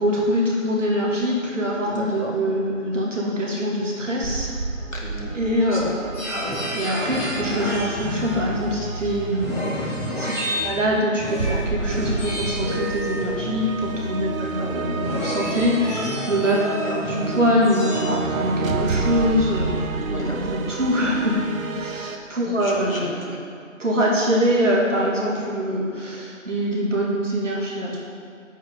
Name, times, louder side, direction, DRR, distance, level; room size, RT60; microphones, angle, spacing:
voice 1, 0.0-4.6 5.3-5.9 6.7-23.2 23.8-28.0, equal, 65° right, -3 dB, 2.6 m, -24 dB
voice 2, 1.9-2.3 4.9-5.4 5.7-6.5 10.5-10.7 14.2-14.7 16.8-17.0 19.9-20.5 22.4-23.4, left 1 dB, 80° left, -2 dB, 2.2 m, -35 dB
sound 1, 4.2-22.2, right 4 dB, 85° right, 0.7 m, -31 dB
sound 2, 6.1-19.8, equal, 10° left, 1.3 m, -30 dB
9.4 x 7.9 x 3.8 m, 2.2 s
figure-of-eight pair, 165°, 40 cm